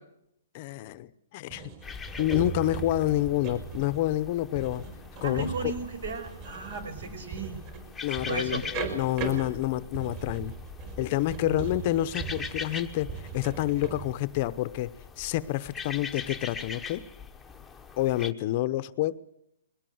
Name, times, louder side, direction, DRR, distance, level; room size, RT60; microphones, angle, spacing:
voice 1, 0.5-1.7 2.2-4.8 5.2-5.7 8.0-10.5 11.0-17.0 18.0-19.2, left 15 dB, 35° left, 14 dB, 0.8 m, -28 dB
sound 1, 1.5-14.1, right 7 dB, 35° right, 4.2 m, -39 dB
sound 2, 1.8-18.3, left 5 dB, 5° left, 1.0 m, -42 dB
voice 2, 5.2-7.6 8.3-8.6 11.4-11.7, right 4 dB, 70° right, 11 dB, 5.5 m, -35 dB
22.0 x 17.5 x 7.9 m, 0.76 s
hypercardioid pair, 165°, 0 cm